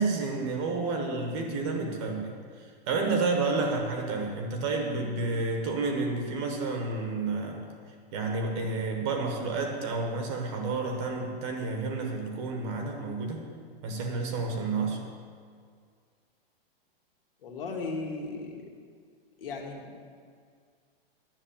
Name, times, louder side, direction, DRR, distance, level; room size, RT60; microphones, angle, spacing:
voice 1, 0.0-2.3 2.9-7.6 8.1-13.4 13.8-15.0, right 3 dB, 30° right, 3 dB, 1.2 m, -30 dB
voice 2, 17.4-18.6 19.4-19.8, left 3 dB, 65° left, 1 dB, 2.2 m, -36 dB
10.5 x 7.8 x 7.2 m, 2.1 s
hypercardioid pair, 170°, 30 cm